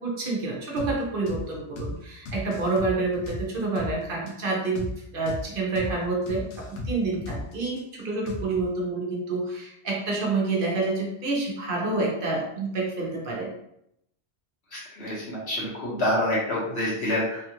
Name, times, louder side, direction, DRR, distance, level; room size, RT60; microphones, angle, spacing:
voice 1, 0.0-4.9 5.1-13.5, right 3 dB, 55° right, -2 dB, 1.0 m, -28 dB
sound 1, 0.8-1.0 1.3-1.5 1.8-2.0 2.3-4.0 4.3-4.4 4.8-5.0 5.3-5.5 5.8-6.0 6.3-7.8 8.3-8.7, left 1 dB, 90° left, 1.0 m, -35 dB
voice 2, 14.7-17.4, left 1 dB, 65° left, -7 dB, 1.5 m, -27 dB
3.3 x 2.4 x 2.9 m, 0.77 s
omnidirectional pair, 1.2 m